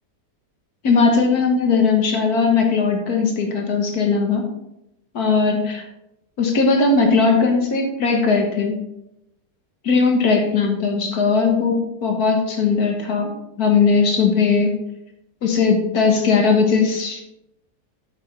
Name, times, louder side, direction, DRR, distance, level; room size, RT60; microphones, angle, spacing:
voice 1, 0.8-4.4 5.1-5.8 6.4-8.8 9.8-13.3 13.6-14.7 15.4-17.2, left 4 dB, 65° left, 2 dB, 1.8 m, -18 dB
8.6 x 8.5 x 3.4 m, 0.84 s
omnidirectional pair, 1.8 m